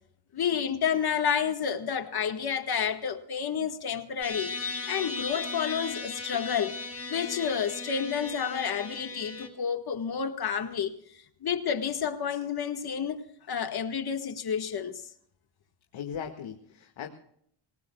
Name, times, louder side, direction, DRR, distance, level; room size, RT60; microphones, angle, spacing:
voice 1, 0.3-4.5 4.9-6.7 7.1-11.0 11.4-15.0, left 7 dB, 50° left, 1.8 m, -30 dB
sound 1, 4.2-9.5, left 3 dB, 30° left, 5.1 m, -37 dB
voice 2, 4.4-4.9 6.3-6.4 15.9-17.1, left 8 dB, 70° left, 2.1 m, -40 dB
26.0 x 18.0 x 2.4 m
cardioid pair, 90°, 48 cm